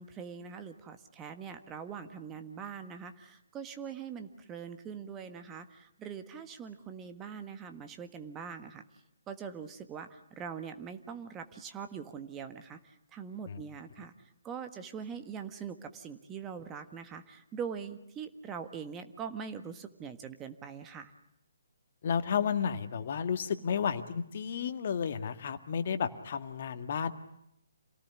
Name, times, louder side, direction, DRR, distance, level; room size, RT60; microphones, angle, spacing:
voice 1, 0.0-8.8 9.3-21.1, right 7 dB, 15° right, 8 dB, 1.5 m, -43 dB
voice 2, 22.0-27.1, left 7 dB, 50° left, 8 dB, 1.9 m, -32 dB
27.5 x 18.0 x 9.7 m, 0.77 s
figure-of-eight pair, 145°, 0 cm